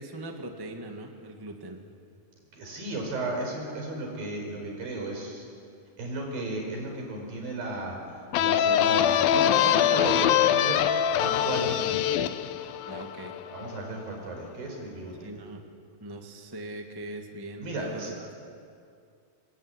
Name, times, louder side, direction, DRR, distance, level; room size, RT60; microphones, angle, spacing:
voice 1, 0.0-1.9 10.3-10.4 12.9-13.4 15.2-15.6 16.0-18.4, right 1 dB, 15° right, 3 dB, 0.7 m, -40 dB
voice 2, 2.5-5.5 6.0-8.0 8.4-10.9 11.2-12.2 13.5-15.3 17.6-18.1, right 2 dB, 70° right, 1 dB, 6.8 m, -34 dB
sound 1, 8.3-13.8, left 10 dB, 80° left, 2.5 m, -24 dB
26.5 x 19.5 x 9.8 m, 2.4 s
omnidirectional pair, 4.2 m